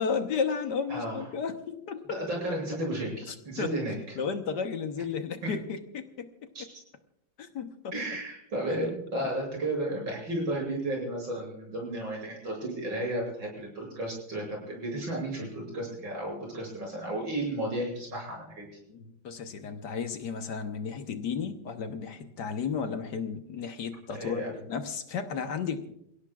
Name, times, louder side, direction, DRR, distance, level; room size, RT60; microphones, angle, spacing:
voice 1, 0.0-2.0 3.3-3.7 4.2-6.3 6.6-6.7 7.4-7.9 8.7-8.9 18.9-25.9, left 6 dB, 65° left, 7 dB, 1.7 m, -33 dB
voice 2, 0.9-1.2 2.1-4.2 6.5-6.6 7.9-18.7 24.1-24.5, right 1 dB, 85° right, -1 dB, 7.5 m, -33 dB
28.0 x 16.5 x 2.4 m, 0.78 s
omnidirectional pair, 2.1 m